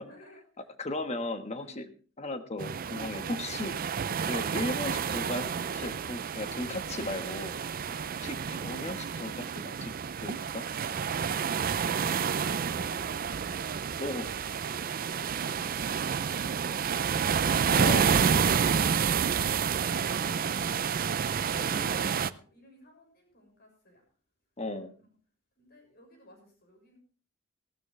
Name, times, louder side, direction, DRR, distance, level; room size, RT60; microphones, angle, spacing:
voice 1, 0.0-0.9 1.6-1.9 2.9-3.5 7.7-8.3 10.5-12.1 12.4-13.9 22.2-24.0 24.7-25.1 25.6-27.0, left 1 dB, 50° left, 2 dB, 6.4 m, -57 dB
voice 2, 0.8-1.9 2.2-3.7 4.2-5.5 5.7-7.6 8.2-9.9 10.2-10.4 14.0-14.4 17.7-18.5 21.5-22.1 24.6-24.9, left 2 dB, 35° left, 8 dB, 1.4 m, -36 dB
sound 1, 2.6-22.3, right 6 dB, 45° right, 0.5 m, -29 dB
15.5 x 13.0 x 3.3 m, 0.39 s
head